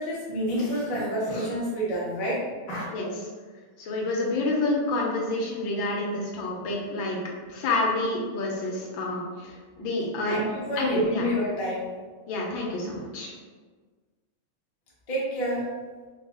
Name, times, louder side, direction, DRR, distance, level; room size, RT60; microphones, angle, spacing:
voice 1, 0.0-2.4 2.7-2.8 10.2-11.8 15.1-15.7, equal, 40° left, -6 dB, 0.5 m, -28 dB
voice 2, 2.9-3.3 3.8-7.2 7.5-10.4 10.8-11.3 12.3-13.3, left 2 dB, 75° left, -2 dB, 1.4 m, -28 dB
4.0 x 2.4 x 3.7 m, 1.5 s
omnidirectional pair, 2.3 m